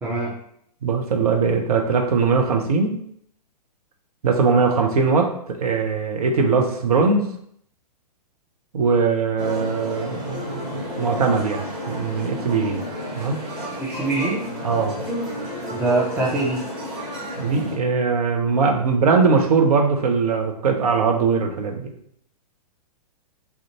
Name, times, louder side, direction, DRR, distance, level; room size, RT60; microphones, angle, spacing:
voice 1, 0.0-0.3 13.8-14.4 15.7-16.6, right 2 dB, 10° right, -6 dB, 0.5 m, -23 dB
voice 2, 0.8-3.0 4.2-7.3 8.7-12.8 13.1-13.4 14.6-15.0 17.4-21.9, right 5 dB, 65° right, 3 dB, 0.5 m, -21 dB
sound 1, 9.4-17.8, equal, 35° right, 0.9 m, -31 dB
2.4 x 2.2 x 2.8 m, 0.68 s
figure-of-eight pair, 115°, 21 cm